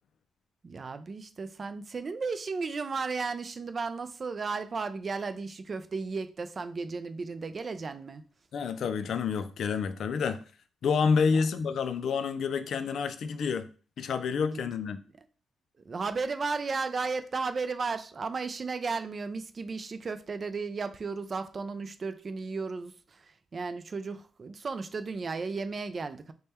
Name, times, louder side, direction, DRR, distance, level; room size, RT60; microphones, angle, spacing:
voice 1, 0.6-8.2 14.4-14.7 15.9-23.2 23.5-26.3, right 4 dB, 35° right, 0.3 m, -34 dB
voice 2, 8.5-10.4 10.8-13.7 14.0-15.0, left 5 dB, 65° left, 0.3 m, -28 dB
3.3 x 2.2 x 4.2 m
cardioid pair, 115°, 0 cm